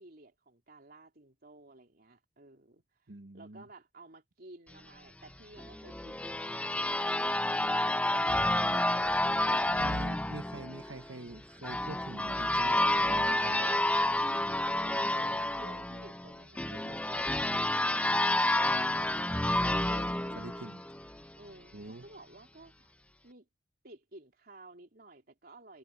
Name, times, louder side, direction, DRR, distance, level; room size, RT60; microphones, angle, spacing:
voice 1, 0.0-9.4 15.0-19.1 19.5-20.7 21.4-22.9 23.2-23.5 23.8-25.8, right 2 dB, 55° right, 3.4 m, -54 dB
voice 2, 3.1-3.6 9.5-13.9 20.4-20.8 21.7-22.0, right 2 dB, 80° right, 1.3 m, -45 dB
sound 1, 5.6-21.3, left 1 dB, 5° left, 0.9 m, -30 dB
head